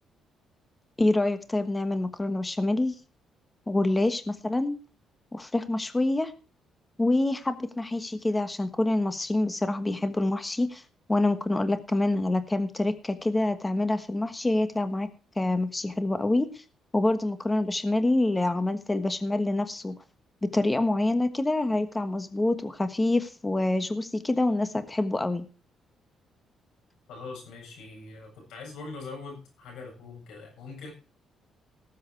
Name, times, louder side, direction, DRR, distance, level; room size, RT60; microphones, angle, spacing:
voice 1, 1.0-2.9 3.7-4.8 5.3-6.3 7.0-10.8 11.1-15.1 15.4-16.6 16.9-20.0 20.4-25.5, left 2 dB, 15° left, 10 dB, 1.3 m, -26 dB
voice 2, 27.1-30.9, left 3 dB, 85° left, 1 dB, 7.7 m, -42 dB
18.5 x 7.6 x 4.7 m, 0.35 s
cardioid pair, 90°, 0 cm